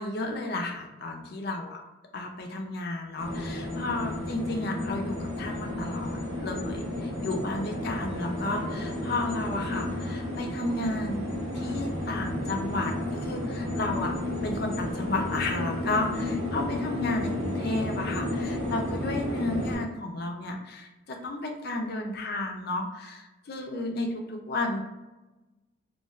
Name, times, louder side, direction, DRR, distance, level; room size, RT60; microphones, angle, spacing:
voice 1, 0.0-1.8 2.1-11.2 11.5-24.8, left 2 dB, 55° left, 3 dB, 0.4 m, -32 dB
sound 1, 3.2-19.8, left 1 dB, 80° right, 1.0 m, -32 dB
3.0 x 2.2 x 2.3 m, 1.1 s
head